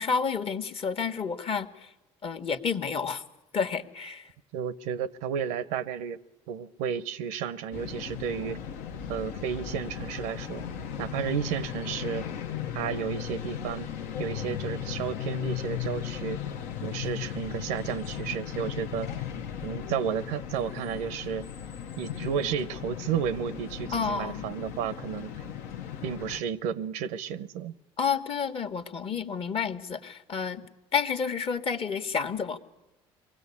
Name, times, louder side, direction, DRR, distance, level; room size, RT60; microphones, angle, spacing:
voice 1, 0.0-1.7 2.2-3.2 3.5-4.3 23.9-24.4 28.0-30.6 30.9-32.6, left 6 dB, 45° left, 1.3 m, -30 dB
voice 2, 4.5-6.2 6.5-8.6 9.1-10.6 11.0-12.3 12.7-13.9 14.2-16.4 16.8-19.1 19.6-21.5 22.0-25.3 26.0-27.7, right 8 dB, 85° right, 0.7 m, -32 dB
sound 1, 7.7-26.4, left 9 dB, 80° left, 0.9 m, -36 dB
22.5 x 16.5 x 8.4 m
supercardioid pair, 75°, 13 cm